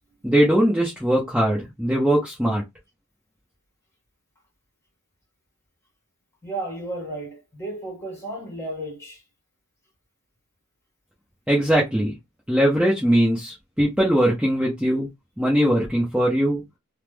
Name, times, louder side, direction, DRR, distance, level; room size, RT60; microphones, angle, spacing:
voice 1, 0.2-2.6 11.5-12.1 12.5-15.1 15.4-16.6, equal, 5° right, 0.8 m, -20 dB
voice 2, 6.4-9.2, right 1 dB, 15° left, 1.3 m, -33 dB
3.1 x 2.0 x 3.4 m
head